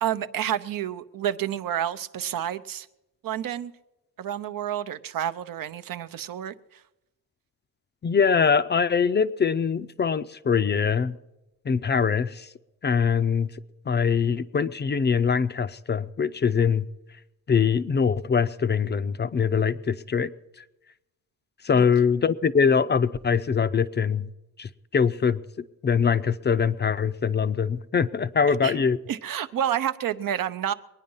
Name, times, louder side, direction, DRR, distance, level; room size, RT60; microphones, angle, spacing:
voice 1, 0.0-2.9 3.2-3.7 4.2-6.5 21.7-21.8 28.5-28.7 29.1-30.7, right 10 dB, 70° right, 11 dB, 0.7 m, -29 dB
voice 2, 8.0-11.1 11.7-12.5 12.8-13.5 13.9-16.9 17.5-20.3 21.6-24.3 24.6-25.4 25.8-29.0, left 6 dB, 30° left, 13 dB, 0.4 m, -23 dB
22.0 x 9.6 x 5.5 m, 0.97 s
wide cardioid pair, 140°, 35 cm